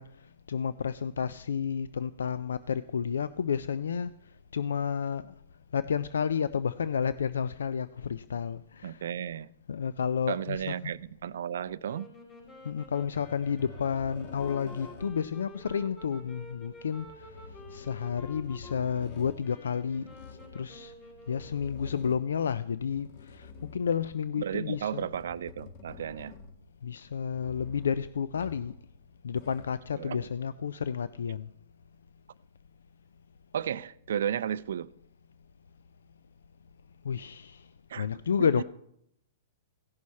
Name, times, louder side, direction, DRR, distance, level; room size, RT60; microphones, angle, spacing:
voice 1, 0.0-5.3 5.7-9.1 9.7-10.9 12.6-20.9 21.3-25.1 26.8-28.8 29.2-31.5 37.0-37.7 38.0-38.6, left 7 dB, 90° left, 0.3 m, -31 dB
voice 2, 8.8-9.5 10.3-12.1 24.4-26.3 29.9-30.3 33.5-34.9 37.9-38.2 38.6-38.7, right 9 dB, 75° right, 0.4 m, -34 dB
sound 1, 11.8-21.9, left 1 dB, 20° left, 3.9 m, -50 dB
sound 2, 13.0-15.3 16.9-19.4 19.9-20.6 21.3-22.4 22.8-24.1 24.7-26.7 27.3-28.0 28.3-28.9 29.2-29.8 30.7-30.8, left 4 dB, 45° left, 1.6 m, -48 dB
16.5 x 6.3 x 4.2 m
hypercardioid pair, 145°, 0 cm